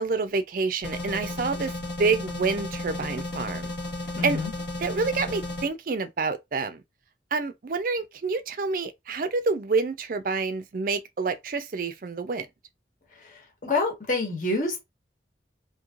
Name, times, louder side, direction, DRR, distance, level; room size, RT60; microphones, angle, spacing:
voice 1, 0.0-1.7 2.0-3.7 4.2-4.4 4.8-6.8 7.3-12.5, right 4 dB, 50° right, 0.4 m, -28 dB
sound 1, 0.8-5.7, left 2 dB, 75° left, 1.5 m, -34 dB
voice 2, 4.1-4.5 13.6-14.8, left 2 dB, 45° left, 1.2 m, -26 dB
3.1 x 2.7 x 2.4 m
head